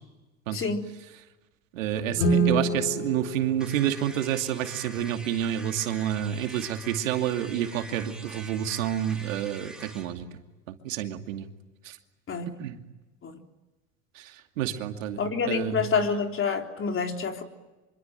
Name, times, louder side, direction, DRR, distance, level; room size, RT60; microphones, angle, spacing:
voice 1, 0.5-0.9 2.1-2.5 12.3-12.6 13.2-13.4 15.2-17.4, left 5 dB, 30° left, 4 dB, 3.7 m, -28 dB
voice 2, 1.7-10.3 10.7-11.5 11.8-12.0 12.6-12.8 14.1-15.9, right 11 dB, 85° right, 6 dB, 2.6 m, -29 dB
Guitar, 2.2-4.8, right 2 dB, 70° left, 5.5 m, -28 dB
sound 1, 3.6-10.1, right 1 dB, ahead, 6.4 m, -45 dB
26.0 x 25.0 x 9.1 m, 1.1 s
supercardioid pair, 100°, 38 cm